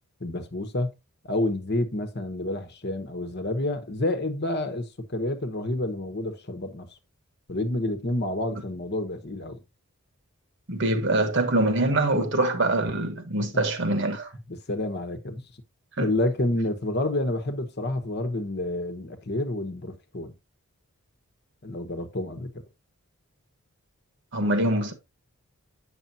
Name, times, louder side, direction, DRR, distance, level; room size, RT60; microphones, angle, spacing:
voice 1, 0.2-0.9 1.2-6.9 7.5-9.6 13.5-13.6 14.5-15.4 16.0-20.3 21.6-22.6, left 1 dB, 45° left, 1.1 m, -29 dB
voice 2, 10.7-14.3 16.0-16.1 24.3-24.9, right 2 dB, 55° right, 1.3 m, -24 dB
8.9 x 6.5 x 2.7 m
head